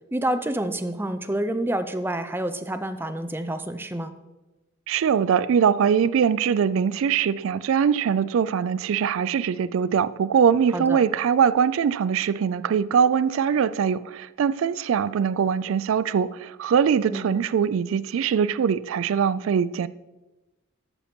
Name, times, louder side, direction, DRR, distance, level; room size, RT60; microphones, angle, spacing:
voice 1, 0.1-4.2 10.7-11.0 17.1-17.4, right 1 dB, 10° right, 0.5 m, -28 dB
voice 2, 4.9-19.9, right 7 dB, 80° right, 0.3 m, -22 dB
12.0 x 7.1 x 4.4 m
head